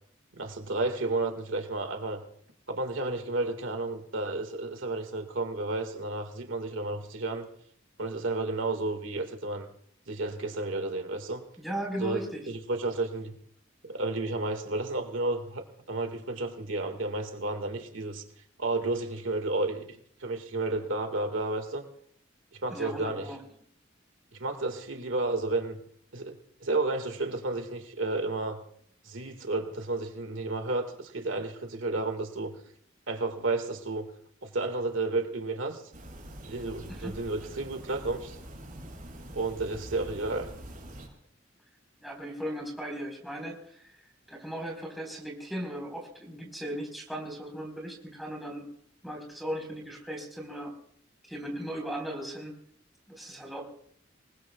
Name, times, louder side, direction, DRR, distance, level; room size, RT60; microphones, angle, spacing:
voice 1, 0.3-2.2 2.7-7.5 8.0-9.7 10.1-11.4 12.0-13.3 13.9-18.2 18.6-19.9 20.2-21.8 22.6-23.3 24.4-25.8 26.1-28.6 29.0-32.6 33.1-34.1 34.4-35.8 36.4-38.4 39.3-40.5, right 2 dB, 85° right, 5 dB, 1.9 m, -32 dB
voice 2, 11.6-12.4 22.7-23.4 36.9-37.2 42.0-43.9 44.3-48.6 49.0-50.7 51.3-52.6 53.1-53.6, right 1 dB, ahead, -2 dB, 4.3 m, -37 dB
sound 1, 35.9-41.1, right 1 dB, 45° right, 7.2 m, -45 dB
27.0 x 20.0 x 2.3 m, 0.65 s
head